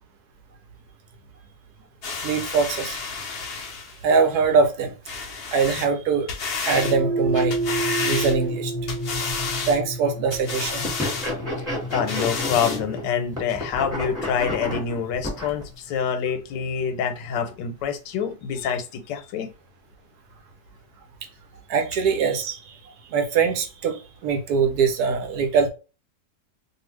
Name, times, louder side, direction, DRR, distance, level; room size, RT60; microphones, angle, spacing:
sound 1, 2.0-4.0 5.0-5.9 6.3-7.0 7.3-8.6 8.9-9.8 10.3-11.3 11.9-12.8 13.5-13.6, left 4 dB, 60° left, 0.6 m, -31 dB
voice 1, 2.2-3.0 4.0-4.9 5.5-6.3 6.6-7.6 8.0-8.7 9.7-10.9 11.5-11.6 21.7-22.7 23.1-25.7, right 5 dB, 70° right, 1.1 m, -22 dB
sound 2, 6.7-15.2, right 2 dB, 20° left, 0.7 m, -30 dB
sound 3, 10.8-13.0 13.3-15.6, left 1 dB, ahead, 1.4 m, -30 dB
voice 2, 11.9-19.5, left 7 dB, 90° left, 1.3 m, -26 dB
2.7 x 2.6 x 3.1 m
omnidirectional pair, 1.8 m